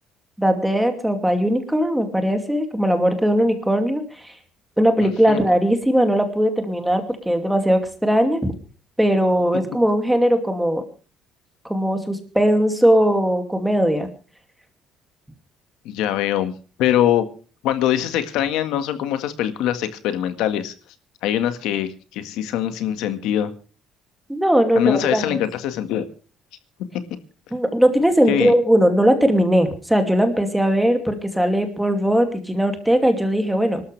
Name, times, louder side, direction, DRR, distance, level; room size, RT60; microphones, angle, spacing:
voice 1, 0.4-4.3 4.8-8.5 9.0-10.8 11.6-14.1 24.3-25.4 27.5-33.8, equal, 5° right, 6 dB, 2.5 m, -19 dB
voice 2, 5.0-5.4 15.9-16.5 16.8-17.3 17.6-20.7 21.2-23.5 24.8-26.1 28.3-28.5, left 11 dB, 80° left, 9 dB, 1.7 m, -23 dB
25.5 x 13.0 x 3.4 m, 0.36 s
cardioid pair, 160°, 0 cm